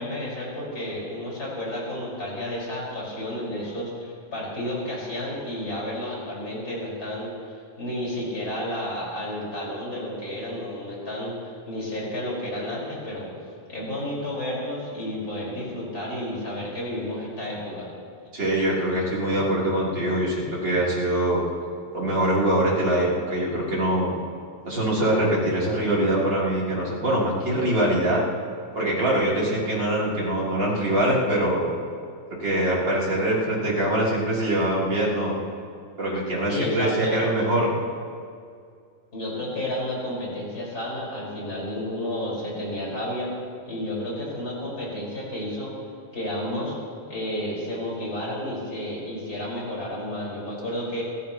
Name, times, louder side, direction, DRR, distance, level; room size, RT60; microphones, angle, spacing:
voice 1, 0.0-7.3 7.8-13.3 13.7-17.9 36.5-37.2 39.1-43.3 43.7-45.7 46.1-46.8 47.1-51.0, left 1 dB, 20° left, -5 dB, 5.3 m, -31 dB
voice 2, 18.3-21.4 21.9-24.2 24.6-28.2 28.7-31.7 32.3-35.4 36.0-37.7, right 1 dB, 30° right, -6 dB, 3.7 m, -23 dB
29.0 x 15.0 x 3.1 m, 2.3 s
omnidirectional pair, 4.5 m